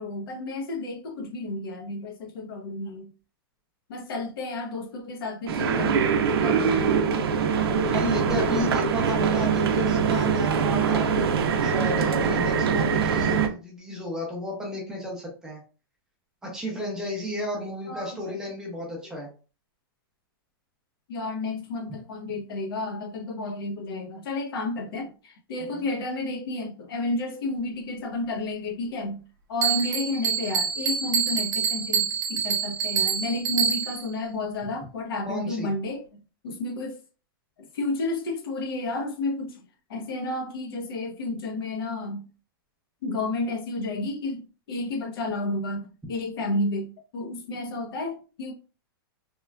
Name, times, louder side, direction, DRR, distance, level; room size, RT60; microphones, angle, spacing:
voice 1, 0.0-3.1 3.9-7.0 17.9-18.2 21.1-29.2 29.5-37.0 37.7-39.6 39.9-42.3 43.0-46.9 47.1-48.5, left 2 dB, 70° left, 0.8 m, -31 dB
sound 1, 5.5-13.5, right 6 dB, 90° right, 0.5 m, -23 dB
voice 2, 7.9-15.6 16.4-19.3 25.7-25.8 35.3-35.7, left 1 dB, 5° right, 0.5 m, -33 dB
Bell, 29.6-34.1, right 7 dB, 50° right, 0.7 m, -26 dB
3.0 x 2.2 x 2.2 m
supercardioid pair, 165°, 12 cm